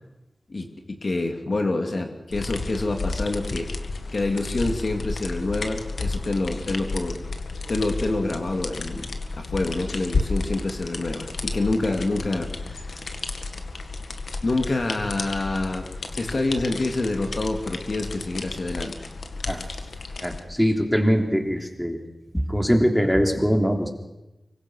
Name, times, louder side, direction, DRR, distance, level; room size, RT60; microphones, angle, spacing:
voice 1, 0.5-3.7 4.1-7.2 7.7-9.1 9.4-12.9 14.4-15.8 16.2-19.1, left 2 dB, 55° left, 4 dB, 2.7 m, -27 dB
sound 1, 2.3-20.4, left 3 dB, 80° left, 2.0 m, -32 dB
voice 2, 20.2-22.0 22.5-23.9, equal, 5° left, 3 dB, 3.4 m, -22 dB
25.0 x 23.5 x 6.5 m, 0.97 s
wide cardioid pair, 80°, 0 cm